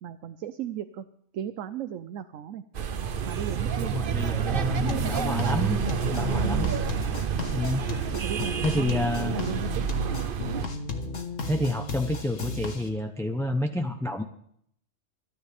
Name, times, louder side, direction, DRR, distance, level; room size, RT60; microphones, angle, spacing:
voice 1, 0.0-1.1 1.3-2.6 3.2-5.2 6.4-6.8 8.1-9.7, right 10 dB, 90° right, 10 dB, 1.1 m, -36 dB
sound 1, 2.7-10.7, right 7 dB, 50° right, 0.8 m, -29 dB
voice 2, 3.8-5.8 6.1-6.7 7.5-7.9 8.6-9.4 11.4-14.2, left 1 dB, 5° left, 5 dB, 0.6 m, -29 dB
sound 2, 4.9-12.9, left 3 dB, 80° left, 1.7 m, -34 dB
26.0 x 10.0 x 3.4 m, 0.68 s
omnidirectional pair, 1.3 m